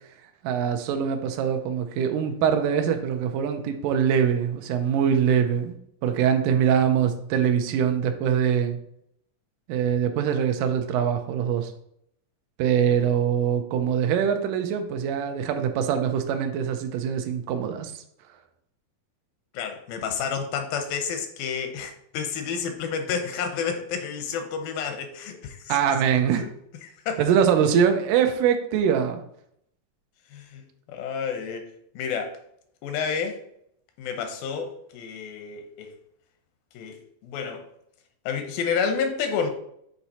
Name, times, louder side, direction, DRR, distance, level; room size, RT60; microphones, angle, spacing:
voice 1, 0.4-8.8 9.7-11.7 12.6-18.0 25.7-26.5 27.2-29.2, right 8 dB, 75° right, 6 dB, 2.1 m, -23 dB
voice 2, 19.5-25.7 26.4-26.5 26.8-27.2 30.3-30.6 30.9-31.7 32.0-32.3 32.8-33.4 34.0-35.9 36.7-37.6 38.3-39.5, left 6 dB, 85° left, 6 dB, 2.6 m, -30 dB
8.0 x 3.0 x 4.1 m, 0.72 s
omnidirectional pair, 4.1 m